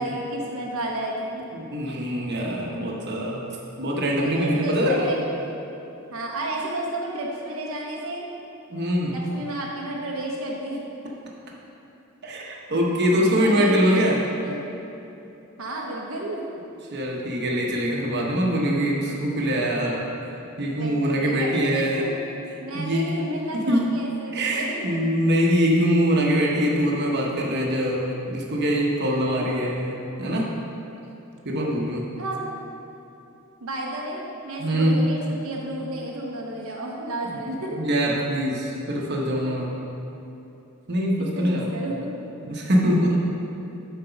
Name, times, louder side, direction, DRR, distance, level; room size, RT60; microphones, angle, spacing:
voice 1, 0.0-1.5 4.2-5.2 6.1-8.3 9.1-10.8 13.4-14.0 14.3-14.8 15.6-16.4 18.9-19.0 20.7-22.1 22.6-24.8 29.6-29.9 32.2-32.5 33.6-37.8 41.3-42.2, right 1 dB, 80° right, -2 dB, 0.9 m, -32 dB
voice 2, 1.5-3.4 3.8-5.1 8.7-9.2 12.2-14.3 16.9-20.0 20.6-22.1 22.7-23.1 23.5-23.9 24.3-30.5 31.4-32.1 34.6-35.0 37.7-39.8 40.9-41.7 42.4-43.2, equal, 55° right, -2 dB, 1.0 m, -23 dB
7.8 x 4.4 x 5.8 m, 2.9 s
head